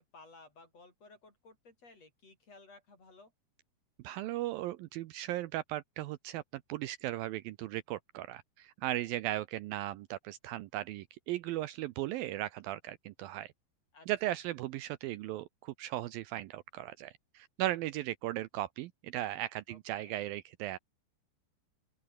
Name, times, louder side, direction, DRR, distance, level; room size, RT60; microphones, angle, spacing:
voice 1, 0.0-3.3 13.9-14.4 19.7-20.2, left 3 dB, 40° left, 7.8 m, -57 dB
voice 2, 4.0-13.5 14.1-20.8, right 15 dB, 80° right, 2.3 m, -37 dB
open air
omnidirectional pair, 4.6 m